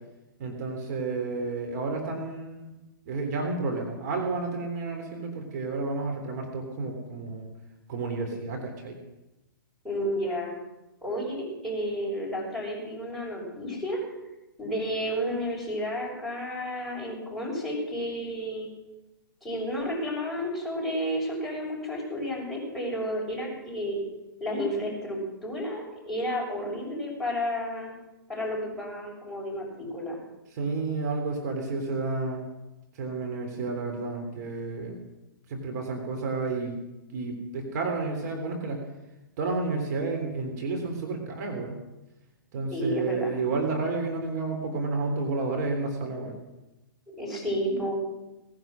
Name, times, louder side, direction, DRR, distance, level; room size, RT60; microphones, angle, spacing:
voice 1, 0.4-7.5 7.9-9.0 30.5-32.5 32.9-35.0 35.5-36.8 37.1-38.8 39.4-41.8 42.5-46.4, right 3 dB, 50° right, 3 dB, 3.5 m, -31 dB
voice 2, 9.8-10.5 11.0-14.0 14.6-18.7 19.4-24.0 24.4-27.9 28.3-30.2 42.7-43.3 47.1-48.0, equal, ahead, -4 dB, 6.5 m, -31 dB
19.0 x 10.5 x 6.3 m, 1.0 s
hypercardioid pair, 125°, 12 cm